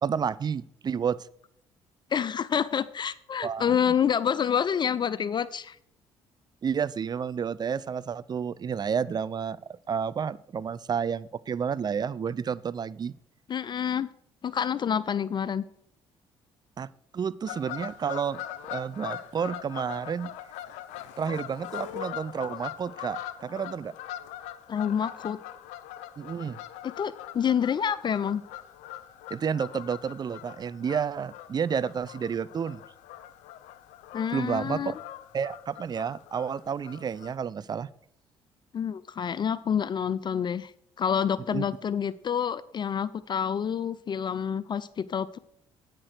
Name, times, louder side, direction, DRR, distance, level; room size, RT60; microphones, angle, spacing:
voice 1, 0.0-1.2 3.4-3.8 6.6-9.6 9.9-13.1 16.8-16.9 17.1-18.4 18.7-20.3 21.2-23.9 26.2-26.6 29.3-32.8 34.3-34.9 35.3-37.9 41.5-41.6, right 7 dB, 35° right, 18 dB, 0.5 m, -30 dB
voice 2, 2.1-5.8 13.5-14.1 14.4-15.6 24.7-25.4 26.8-28.4 34.1-35.0 38.7-40.7 41.0-45.4, left 8 dB, 40° left, 17 dB, 0.4 m, -28 dB
Fowl / Bird vocalization bird call bird song, 17.5-37.3, left 12 dB, 85° left, 0.6 m, -42 dB
8.8 x 5.9 x 6.4 m, 0.67 s
supercardioid pair, 70°, 12 cm